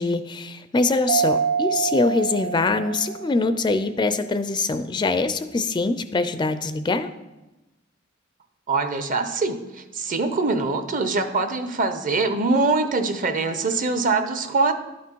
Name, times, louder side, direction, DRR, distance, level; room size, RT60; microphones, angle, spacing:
voice 1, 0.0-7.1, left 3 dB, 25° left, 10 dB, 0.4 m, -23 dB
Mallet percussion, 1.1-3.6, right 7 dB, 90° right, 0.3 m, -26 dB
voice 2, 8.7-14.7, right 3 dB, 40° right, 9 dB, 0.8 m, -23 dB
11.0 x 5.9 x 4.5 m, 1.0 s
head